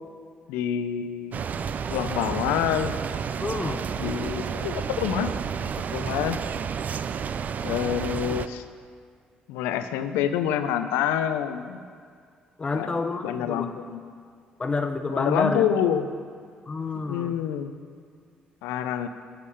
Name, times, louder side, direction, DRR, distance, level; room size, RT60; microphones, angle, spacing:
voice 1, 0.5-1.6 1.9-2.9 4.0-5.3 5.8-6.4 7.6-8.6 9.5-11.8 12.7-14.0 15.1-16.1 17.1-17.7 18.6-19.1, left 9 dB, 90° left, 10 dB, 0.5 m, -27 dB
sound 1, 1.3-8.5, right 7 dB, 50° right, 0.4 m, -31 dB
voice 2, 3.4-3.9 12.6-13.7 14.6-15.6 16.7-17.4, left 3 dB, 30° left, 7 dB, 0.8 m, -28 dB
8.2 x 7.9 x 4.8 m, 2.1 s
supercardioid pair, 65°, 4 cm